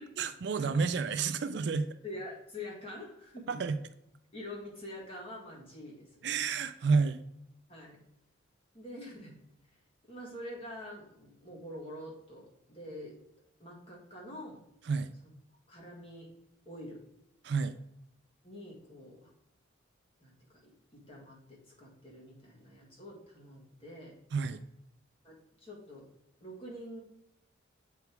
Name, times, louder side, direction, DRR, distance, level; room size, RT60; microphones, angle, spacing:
voice 1, 0.2-1.9 3.5-3.8 6.2-7.2 14.9-15.1 17.4-17.8 24.3-24.6, right 5 dB, 60° right, 11 dB, 0.4 m, -30 dB
voice 2, 2.0-3.5 4.3-6.4 7.7-8.0 8.7-9.4 10.0-13.2 13.6-14.6 15.7-16.3 16.7-17.0 18.4-19.3 20.2-20.4 20.6-24.2 25.2-26.1 26.4-27.0, left 1 dB, 30° left, -2 dB, 1.9 m, -46 dB
8.1 x 3.5 x 4.5 m, 0.80 s
head